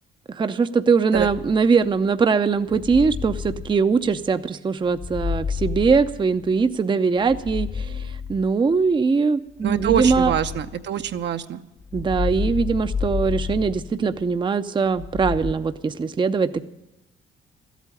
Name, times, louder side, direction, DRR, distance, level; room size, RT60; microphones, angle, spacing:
voice 1, 0.3-10.3 11.9-16.6, right 5 dB, 25° right, 10 dB, 0.6 m, -21 dB
sound 1, 1.1-1.8 2.6-4.3 4.9-6.7 7.2-8.8 9.6-11.2 11.8-14.3 14.9-15.5, left 6 dB, 80° left, 1.9 m, -30 dB
voice 2, 9.6-11.6, right 9 dB, 60° right, 8 dB, 0.8 m, -24 dB
13.5 x 8.3 x 9.9 m, 0.98 s
cardioid pair, 90°, 20 cm